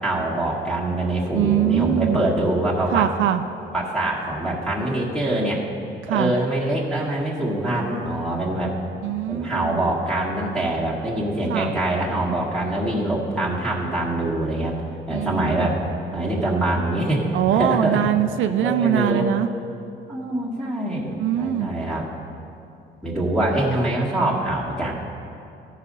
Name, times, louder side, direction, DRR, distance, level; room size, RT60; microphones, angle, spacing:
voice 1, 0.0-3.0 3.7-5.6 6.1-8.7 9.3-14.7 15.1-15.8 16.1-17.3 17.5-18.0 18.5-19.3 20.1-22.1 23.0-24.9, right 1 dB, 5° left, -7 dB, 1.8 m, -24 dB
voice 2, 1.3-2.2 2.9-3.4 6.0-6.3 9.0-9.8 11.5-11.7 15.1-15.7 17.3-19.5 21.2-21.7, right 10 dB, 80° right, 9 dB, 0.5 m, -22 dB
14.0 x 5.1 x 5.5 m, 2.6 s
cardioid pair, 90°, 20 cm